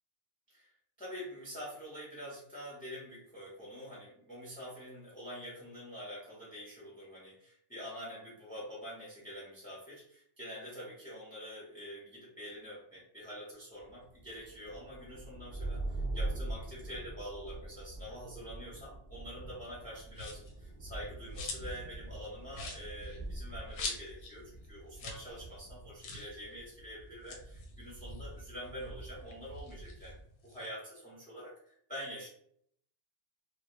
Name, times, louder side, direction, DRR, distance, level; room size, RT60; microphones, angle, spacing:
voice 1, 1.0-30.2 30.4-32.3, equal, 10° left, -6 dB, 0.4 m, -46 dB
sound 1, 13.8-30.2, right 2 dB, 55° right, 0.5 m, -44 dB
sound 2, 20.1-20.6 21.0-21.8 22.1-22.2 22.5-24.4 24.6-24.7 24.9-25.3 25.5-25.6 26.0-26.3 27.1-28.8 29.2-30.7, left 3 dB, 90° left, 0.9 m, -43 dB
2.1 x 2.1 x 2.9 m, 0.66 s
omnidirectional pair, 1.3 m